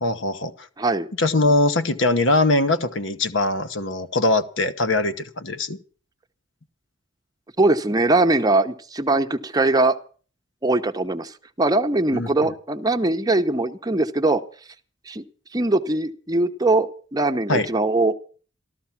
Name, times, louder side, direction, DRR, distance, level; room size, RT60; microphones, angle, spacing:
voice 1, 0.0-0.7 1.2-5.8 12.1-12.3 17.5-17.7, left 2 dB, 70° left, 11 dB, 1.1 m, -21 dB
voice 2, 0.8-1.1 7.6-10.0 10.6-11.3 11.6-14.4 15.1-15.2 15.5-18.2, right 2 dB, 20° right, 7 dB, 0.9 m, -21 dB
13.5 x 13.5 x 5.9 m, 0.41 s
head